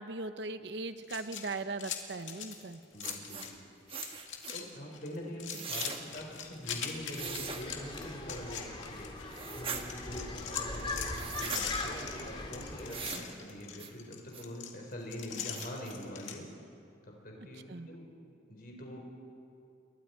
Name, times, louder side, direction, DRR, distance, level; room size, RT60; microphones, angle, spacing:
voice 1, 0.0-2.8 17.4-17.9, right 3 dB, 60° right, 10 dB, 0.9 m, -39 dB
sound 1, 1.0-3.6 3.9-4.6 4.9-9.4 9.8-16.4, left 8 dB, 85° left, 2.2 m, -42 dB
voice 2, 2.9-3.5 4.5-9.1 9.5-16.5 17.1-18.1 18.5-19.0, equal, 50° left, 0 dB, 4.4 m, -44 dB
sound 2, 3.0-3.5 3.9-4.6 5.5-6.0 7.1-7.6 9.3-9.8 11.1-11.6 12.9-13.3 13.8-13.9 14.3-14.4 14.9-15.0 15.4-15.9, right 6 dB, 30° right, 1.3 m, -40 dB
sound 3, 7.2-13.1, left 2 dB, 25° left, 2.1 m, -41 dB
29.0 x 22.5 x 4.5 m, 2.5 s
head